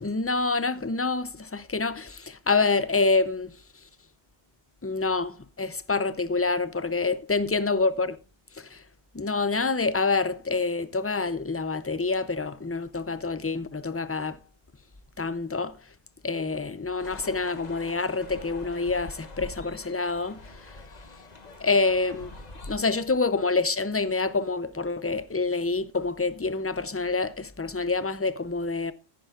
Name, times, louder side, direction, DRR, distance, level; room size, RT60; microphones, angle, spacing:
voice 1, 0.0-3.5 4.8-8.1 8.5-8.8 9.1-14.4 15.2-15.8 16.2-20.4 21.6-22.3 22.7-28.9, left 3 dB, 20° left, 0.4 m, -27 dB
sound 1, 17.0-22.8, left 2 dB, 40° left, 1.3 m, -44 dB
14.0 x 10.5 x 2.4 m
omnidirectional pair, 1.1 m